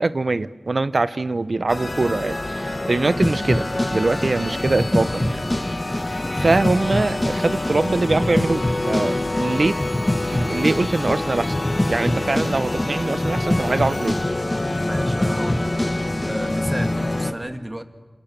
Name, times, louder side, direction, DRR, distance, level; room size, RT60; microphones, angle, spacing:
voice 1, 0.0-3.7 3.9-5.4 6.3-9.8 10.3-11.5 11.9-14.2, right 3 dB, 65° right, 14 dB, 0.9 m, -23 dB
sound 1, 1.7-17.3, left 2 dB, 40° left, 2.2 m, -26 dB
sound 2, 3.2-16.9, left 1 dB, 20° left, 2.5 m, -26 dB
voice 2, 14.8-15.7 16.3-17.8, right 1 dB, 25° right, 7 dB, 2.0 m, -32 dB
29.5 x 27.5 x 7.0 m, 1.3 s
wide cardioid pair, 55°, 0 cm